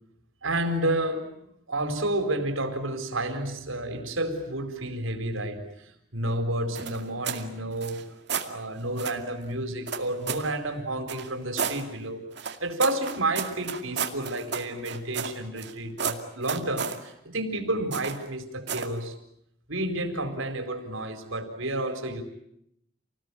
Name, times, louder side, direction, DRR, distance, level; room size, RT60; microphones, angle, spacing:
voice 1, 0.4-1.3 1.7-8.0 8.4-12.2 12.6-19.1 19.7-22.2, right 1 dB, 80° right, 7 dB, 4.5 m, -30 dB
sound 1, 6.7-7.5 7.8-8.5 9.0-9.2 9.9-10.5 11.1-11.8 12.4-15.7 16.0-17.0 17.9-18.3 18.7-19.0, right 6 dB, 55° right, 2.3 m, -32 dB
28.5 x 19.5 x 10.0 m, 0.76 s
head